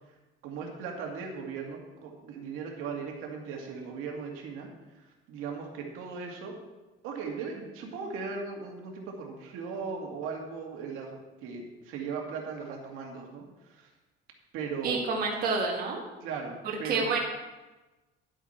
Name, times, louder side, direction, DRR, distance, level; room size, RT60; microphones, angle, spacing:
voice 1, 0.4-4.7 5.3-6.6 7.0-13.9 14.5-15.2 16.2-17.1, right 5 dB, 85° right, 1 dB, 2.1 m, -38 dB
voice 2, 14.8-16.0 16.8-17.2, right 4 dB, 45° right, -1 dB, 1.7 m, -28 dB
11.0 x 8.4 x 4.4 m, 1.1 s
cardioid pair, 180°, 21 cm